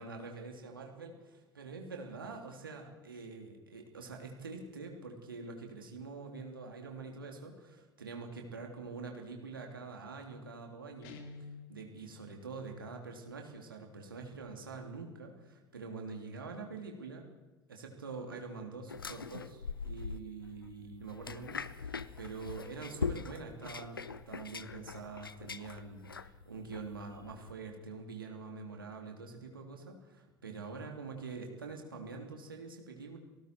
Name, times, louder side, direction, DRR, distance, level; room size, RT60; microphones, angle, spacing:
voice 1, 0.0-11.2 11.7-17.3 17.7-33.2, right 4 dB, 80° right, 2 dB, 3.2 m, -45 dB
Guitar, 11.0-11.8, left 3 dB, 60° left, 2.9 m, -48 dB
sound 1, 18.9-27.5, left 5 dB, 80° left, 0.7 m, -42 dB
30.0 x 19.5 x 4.6 m, 1.2 s
figure-of-eight pair, 65°, 12 cm